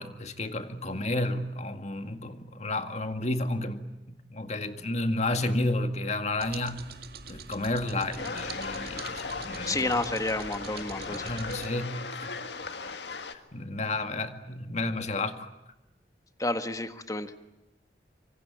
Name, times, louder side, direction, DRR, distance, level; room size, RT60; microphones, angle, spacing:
voice 1, 0.0-6.9 7.3-10.0 10.7-12.3 12.8-13.0 13.3-15.5, left 2 dB, 40° left, 8 dB, 2.0 m, -32 dB
sound 1, 6.4-11.7, right 5 dB, 60° right, 2.1 m, -44 dB
sound 2, 8.2-13.3, left 4 dB, 75° left, 1.8 m, -37 dB
voice 2, 9.7-11.4 16.4-17.3, left 2 dB, 20° left, 9 dB, 1.5 m, -30 dB
26.0 x 25.5 x 8.9 m, 0.97 s
head